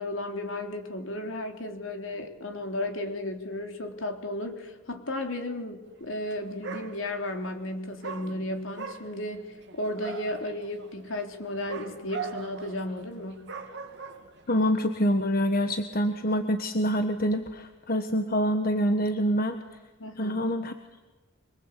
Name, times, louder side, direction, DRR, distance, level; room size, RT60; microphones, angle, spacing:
voice 1, 0.0-13.5 20.0-20.4, left 1 dB, 70° left, 4 dB, 3.6 m, -34 dB
Dog, 6.2-6.4 6.6-7.4 8.0-14.7, right 5 dB, 60° right, 2.4 m, -41 dB
voice 2, 14.5-19.6 20.2-20.7, equal, 45° left, 7 dB, 1.4 m, -26 dB
25.0 x 23.5 x 8.4 m, 1.2 s
head